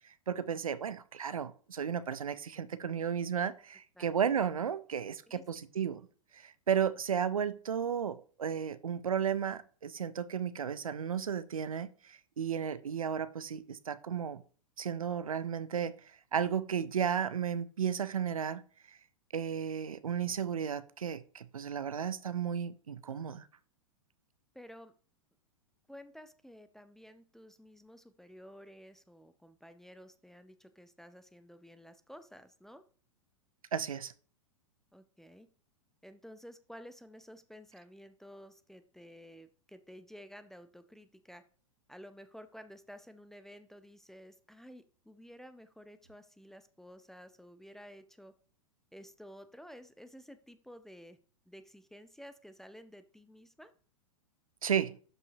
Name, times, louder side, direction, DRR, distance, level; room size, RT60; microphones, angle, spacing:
voice 1, 0.3-6.0 6.3-14.4 14.8-15.9 16.3-18.6 19.3-23.5 33.7-34.1 54.6-55.0, right 8 dB, 75° right, 0.6 m, -34 dB
voice 2, 5.3-5.7 24.5-24.9 25.9-32.8 34.9-35.5 36.0-41.4 41.9-48.3 48.9-51.2 51.5-53.7, equal, ahead, 0.5 m, -52 dB
12.0 x 5.4 x 2.7 m
figure-of-eight pair, 100°, 18 cm